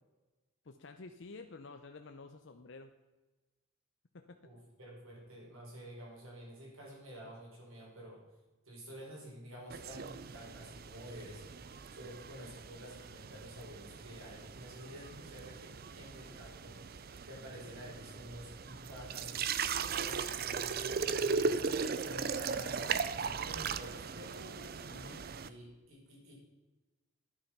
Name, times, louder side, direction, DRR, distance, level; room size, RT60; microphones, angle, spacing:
voice 1, 0.6-2.9 4.1-4.4 24.9-25.3, left 3 dB, 60° left, 6 dB, 0.7 m, -50 dB
voice 2, 4.4-8.2 8.6-19.3 19.8-26.3, equal, 75° right, -2 dB, 5.1 m, -50 dB
sound 1, 9.7-25.5, right 5 dB, 45° right, 0.5 m, -38 dB
11.5 x 8.7 x 5.9 m, 1.2 s
head